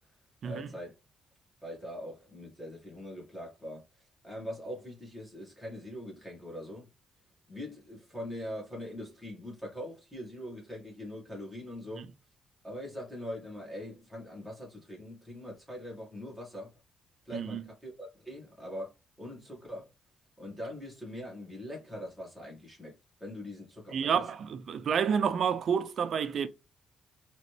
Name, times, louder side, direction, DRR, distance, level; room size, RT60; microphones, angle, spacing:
voice 1, 0.4-1.0 1.6-6.9 7.5-12.1 12.6-16.7 17.3-18.9 19.2-19.9 20.4-22.9 23.2-24.2, left 1 dB, 5° left, 2.0 m, -42 dB
voice 2, 17.3-17.6 23.9-26.5, right 7 dB, 60° right, 0.5 m, -29 dB
4.0 x 3.0 x 3.2 m
cardioid pair, 90°, 0 cm